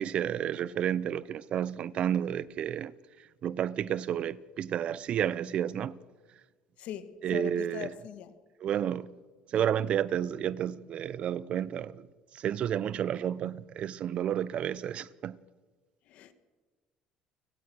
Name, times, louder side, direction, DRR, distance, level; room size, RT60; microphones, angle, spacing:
voice 1, 0.0-2.9 3.4-6.0 7.2-7.9 8.6-9.1 9.5-12.1 12.3-15.4, right 9 dB, 50° right, 0.7 m, -31 dB
voice 2, 6.8-8.3 16.1-16.3, left 10 dB, 65° left, 1.8 m, -41 dB
29.5 x 17.0 x 6.3 m
supercardioid pair, 100°, 2 cm